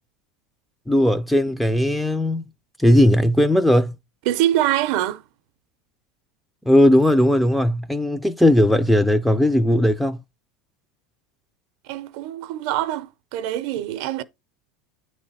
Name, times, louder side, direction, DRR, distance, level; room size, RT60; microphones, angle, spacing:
voice 1, 0.9-2.4 2.8-3.9 6.7-10.2, left 1 dB, ahead, 0.3 m, -17 dB
voice 2, 4.3-5.2 11.9-14.2, right 13 dB, 55° right, 0.5 m, -24 dB
8.8 x 3.2 x 4.1 m
supercardioid pair, 165°, 0 cm